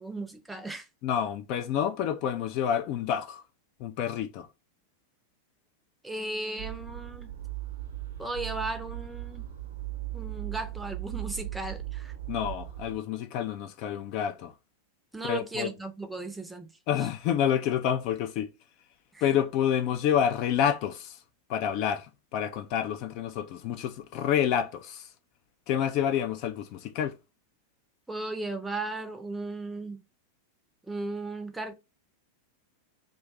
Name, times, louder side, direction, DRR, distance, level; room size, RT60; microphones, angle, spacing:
voice 1, 0.0-0.9 6.0-7.3 8.2-9.5 10.1-12.1 15.1-16.7 17.0-17.1 19.1-19.3 28.1-30.0 30.9-31.7, right 2 dB, 5° right, 0.5 m, -36 dB
voice 2, 1.0-3.4 3.8-4.5 12.3-14.5 15.2-15.7 16.9-18.5 19.2-21.2 21.5-25.1 25.7-27.1, left 9 dB, 40° left, 0.3 m, -28 dB
sound 1, 6.6-13.0, right 14 dB, 65° right, 0.7 m, -38 dB
2.5 x 2.2 x 3.5 m
figure-of-eight pair, 90°, 0 cm